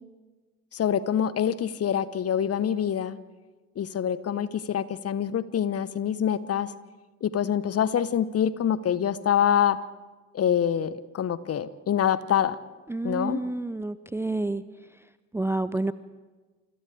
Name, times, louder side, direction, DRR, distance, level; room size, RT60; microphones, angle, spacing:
voice 1, 0.7-3.2 3.8-6.7 7.2-9.8 10.3-12.6 13.0-13.4, left 9 dB, 40° left, 16 dB, 1.1 m, -25 dB
voice 2, 12.9-14.6 15.3-15.9, right 2 dB, 5° right, 16 dB, 0.6 m, -29 dB
29.5 x 28.0 x 3.5 m, 1.3 s
figure-of-eight pair, 45°, 38 cm